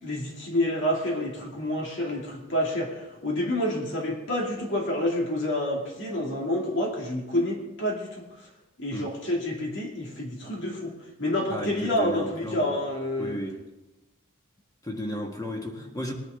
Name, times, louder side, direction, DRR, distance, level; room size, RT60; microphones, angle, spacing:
voice 1, 0.0-8.3 8.8-13.4, left 1 dB, 60° left, -1 dB, 2.4 m, -28 dB
voice 2, 11.5-12.9 13.2-13.6 14.8-16.1, equal, 15° left, 1 dB, 1.7 m, -34 dB
20.5 x 10.5 x 3.8 m, 1.0 s
head